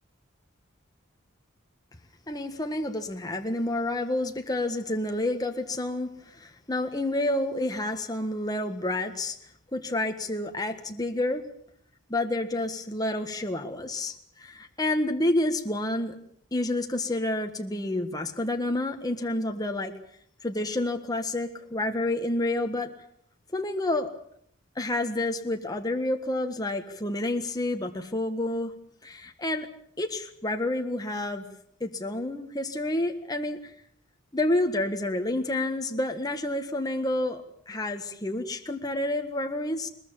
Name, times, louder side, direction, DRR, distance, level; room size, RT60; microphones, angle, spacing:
voice 1, 2.3-9.4 9.7-11.4 12.1-16.1 16.5-19.9 20.4-22.9 23.5-24.1 24.7-28.7 29.0-29.7 30.0-31.4 31.8-33.7 34.3-39.9, left 1 dB, 20° left, 5 dB, 1.6 m, -29 dB
21.5 x 21.5 x 7.3 m, 0.65 s
head